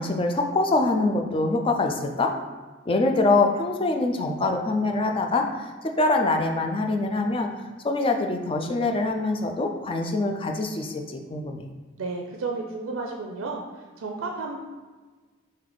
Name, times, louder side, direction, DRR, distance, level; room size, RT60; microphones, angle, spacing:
voice 1, 0.0-2.3 2.9-7.5 7.8-11.6, left 2 dB, 25° left, 4 dB, 0.3 m, -24 dB
voice 2, 12.0-13.6 14.0-14.6, right 3 dB, 85° right, 1 dB, 0.4 m, -32 dB
3.3 x 3.2 x 3.9 m, 1.4 s
head